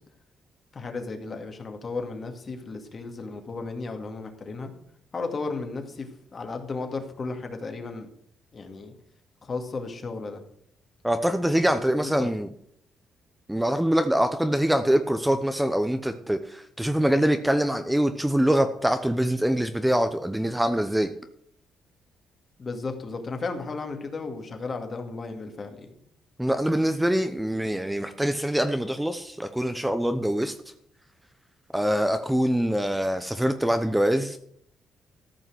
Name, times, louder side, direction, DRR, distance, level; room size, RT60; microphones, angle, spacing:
voice 1, 0.7-4.7 5.1-8.1 8.5-8.9 9.4-10.4 11.7-12.3 22.6-26.0, left 3 dB, 40° left, 4 dB, 2.2 m, -34 dB
voice 2, 11.0-12.5 13.5-21.1 26.4-30.5 31.7-34.4, right 1 dB, 5° right, 8 dB, 0.8 m, -24 dB
14.0 x 5.7 x 7.8 m, 0.68 s
cardioid pair, 90°, 0 cm